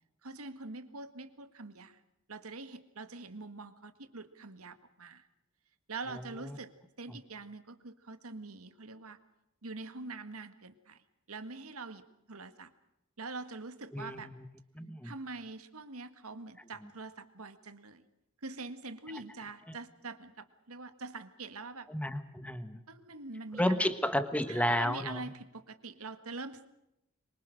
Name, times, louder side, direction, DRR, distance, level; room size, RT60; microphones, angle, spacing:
voice 1, 0.2-2.0 2.3-5.3 5.9-9.2 9.6-11.0 11.3-12.7 13.2-14.3 15.0-18.1 18.4-21.9 22.9-23.9 24.5-26.7, right 3 dB, 85° right, 11 dB, 1.8 m, -44 dB
voice 2, 13.9-14.3 14.7-15.1 21.9-22.8 23.6-25.3, left 1 dB, 5° left, 11 dB, 1.3 m, -32 dB
25.0 x 23.5 x 6.5 m, 0.84 s
head